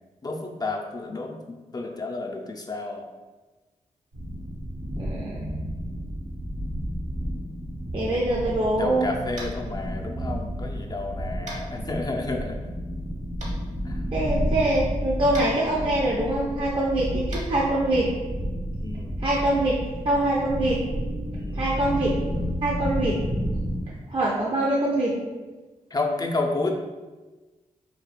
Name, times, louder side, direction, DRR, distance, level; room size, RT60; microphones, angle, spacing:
voice 1, 0.2-3.1 8.1-8.2 8.6-12.6 13.8-14.0 18.8-19.2 21.3-21.7 25.9-26.7, left 3 dB, 30° left, 1 dB, 0.4 m, -31 dB
sound 1, 4.1-23.8, equal, 80° right, 1.1 m, -31 dB
voice 2, 5.0-5.5 7.9-9.1 14.1-18.1 19.2-19.7 20.0-20.8 21.6-22.1 22.6-23.2 24.1-25.1, right 1 dB, 35° right, -4 dB, 0.5 m, -24 dB
Tap, 9.3-9.6 11.4-11.6 13.4-13.5 15.3-15.5 17.3-17.4, right 1 dB, 55° right, 1.0 m, -38 dB
2.3 x 2.2 x 3.2 m, 1.3 s
supercardioid pair, 40°, 14 cm